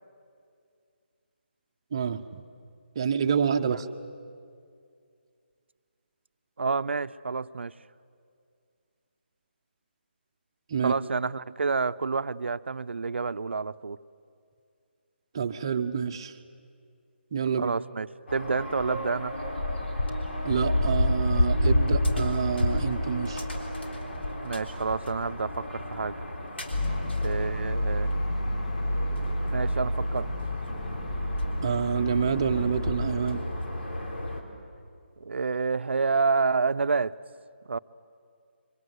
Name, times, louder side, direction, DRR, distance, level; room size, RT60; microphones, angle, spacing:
voice 1, 1.9-2.4 3.0-3.9 10.7-10.9 15.3-16.3 17.3-17.7 20.4-23.4 31.6-33.4, right 7 dB, 25° right, 8 dB, 0.7 m, -27 dB
voice 2, 6.6-7.7 10.8-14.0 17.6-18.1 18.3-19.3 24.4-26.2 27.2-28.1 29.5-30.3 35.2-37.2 37.7-37.8, right 4 dB, 75° right, 14 dB, 0.6 m, -28 dB
sound 1, 18.3-34.4, left 1 dB, 70° left, 3.6 m, -30 dB
sound 2, 26.7-32.8, equal, 40° left, 1.4 m, -30 dB
26.5 x 24.0 x 8.0 m, 2.3 s
hypercardioid pair, 175°, 6 cm